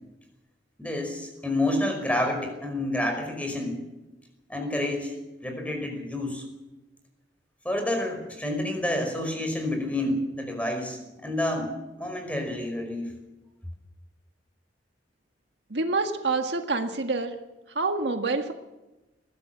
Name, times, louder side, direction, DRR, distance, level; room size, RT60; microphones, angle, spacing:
voice 1, 0.8-3.8 4.5-5.1 5.4-6.4 7.6-11.7 12.0-13.1, left 1 dB, 10° left, 4 dB, 5.3 m, -29 dB
voice 2, 15.7-17.4 17.8-18.5, right 3 dB, 70° right, 5 dB, 1.8 m, -27 dB
21.5 x 16.0 x 7.5 m, 1.0 s
head